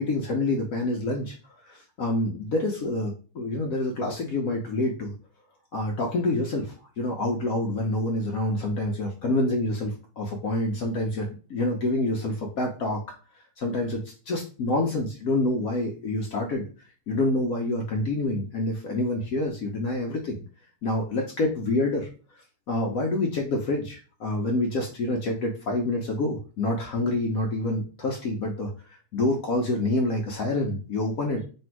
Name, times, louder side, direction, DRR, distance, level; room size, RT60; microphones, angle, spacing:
voice 1, 0.0-1.3 1.7-5.1 5.7-13.0 13.6-16.7 17.1-20.4 20.8-22.1 22.7-28.7 29.1-31.4, left 2 dB, 70° left, 0 dB, 0.8 m, -27 dB
3.4 x 2.6 x 4.5 m, 0.36 s
omnidirectional pair, 2.4 m